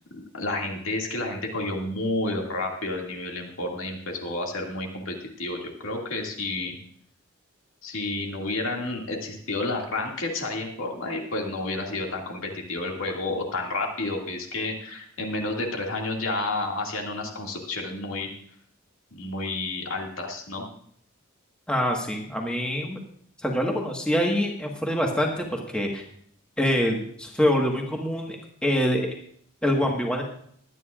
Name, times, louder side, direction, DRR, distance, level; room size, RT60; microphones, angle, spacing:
voice 1, 0.1-6.7 7.8-18.3 19.1-20.7, left 2 dB, 75° left, 0 dB, 2.2 m, -30 dB
voice 2, 21.7-23.0 23.4-26.0 26.6-28.4 28.6-29.1 29.6-30.2, equal, 5° left, 0 dB, 1.4 m, -25 dB
21.5 x 9.5 x 2.5 m, 0.63 s
head